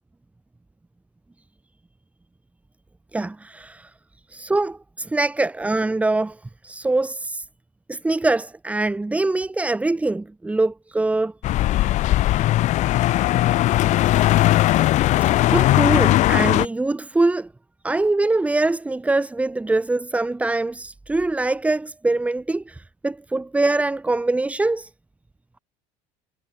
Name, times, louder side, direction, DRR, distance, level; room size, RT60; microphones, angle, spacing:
voice 1, 3.1-3.9 4.3-6.4 6.6-7.5 7.9-11.3 15.5-17.5 17.8-24.9, right 2 dB, 10° right, 5.5 m, -23 dB
sound 1, 11.4-16.7, left 15 dB, 50° left, 6.1 m, -18 dB
cardioid pair, 150°, 16 cm